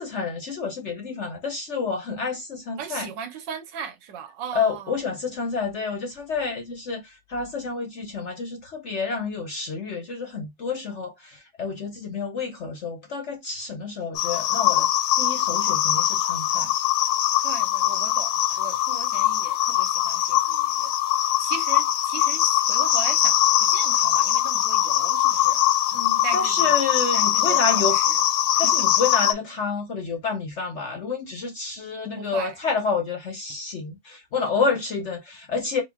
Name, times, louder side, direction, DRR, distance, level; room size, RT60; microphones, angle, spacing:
voice 1, 0.0-3.1 4.5-14.9 15.2-16.7 25.9-28.0 28.6-35.8, left 4 dB, 55° left, 0.8 m, -29 dB
voice 2, 2.8-5.0 17.4-20.9 21.4-25.6 26.2-26.8 27.1-28.2 28.5-28.7 32.2-32.5, right 7 dB, 85° right, 1.5 m, -37 dB
sound 1, 14.1-29.3, left 12 dB, 85° left, 1.2 m, -22 dB
4.3 x 2.0 x 3.5 m
omnidirectional pair, 1.9 m